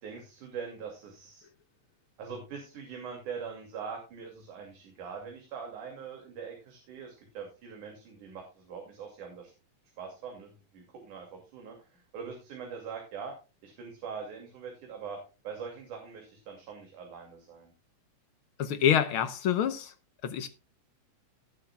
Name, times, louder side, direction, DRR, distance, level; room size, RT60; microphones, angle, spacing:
voice 1, 0.0-1.5 2.2-9.5 10.0-13.3 13.6-15.2 15.4-17.7, right 6 dB, 75° right, 4.0 m, -42 dB
voice 2, 18.6-19.9 20.2-20.5, left 9 dB, 75° left, 1.2 m, -27 dB
18.5 x 8.0 x 2.3 m
omnidirectional pair, 3.5 m